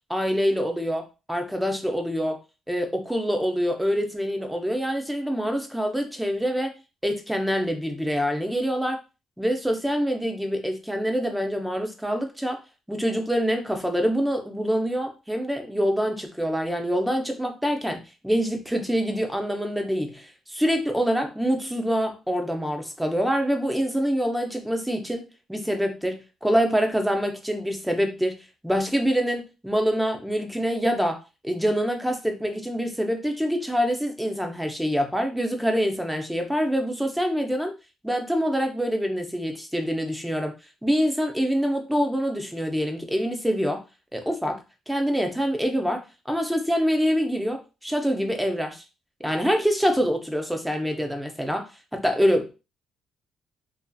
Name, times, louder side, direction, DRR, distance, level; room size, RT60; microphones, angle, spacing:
voice 1, 0.1-2.4 2.7-6.7 7.0-9.0 9.4-12.6 12.9-28.4 28.6-31.2 31.4-37.7 38.0-40.5 40.8-43.8 44.1-44.6 44.9-48.8 49.2-51.7 51.9-52.5, equal, 5° right, 4 dB, 0.6 m, -25 dB
2.6 x 2.3 x 2.3 m, 0.29 s
cardioid pair, 90°, 0 cm